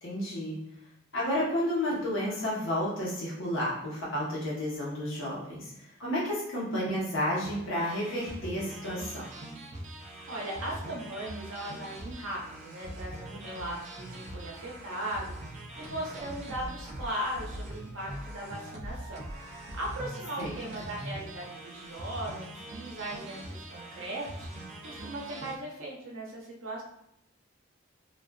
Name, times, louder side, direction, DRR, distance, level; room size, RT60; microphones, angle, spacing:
voice 1, 0.0-0.6 1.1-9.3 20.4-20.5, equal, 65° left, -5 dB, 0.9 m, -31 dB
sound 1, 7.4-25.6, right 1 dB, 35° right, 0.3 m, -42 dB
voice 2, 10.3-26.8, right 1 dB, 75° right, -2 dB, 0.7 m, -38 dB
2.4 x 2.3 x 2.2 m, 0.77 s
head